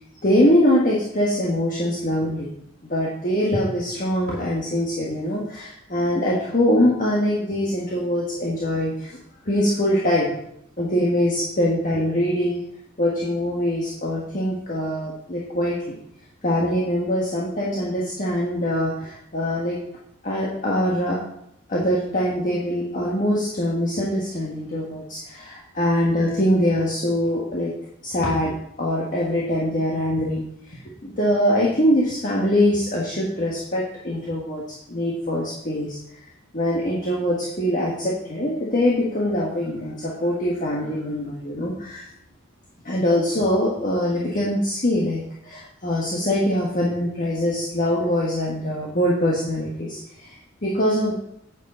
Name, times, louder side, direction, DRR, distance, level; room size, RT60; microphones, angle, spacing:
voice 1, 0.2-2.5 2.8-9.2 9.4-10.4 10.8-12.6 13.0-16.0 16.4-19.8 20.2-21.2 21.7-27.7 28.0-34.6 34.9-36.3 36.5-42.0 42.8-51.1, left 1 dB, 40° left, -4 dB, 1.5 m, -23 dB
9.3 x 8.5 x 3.9 m, 0.75 s
head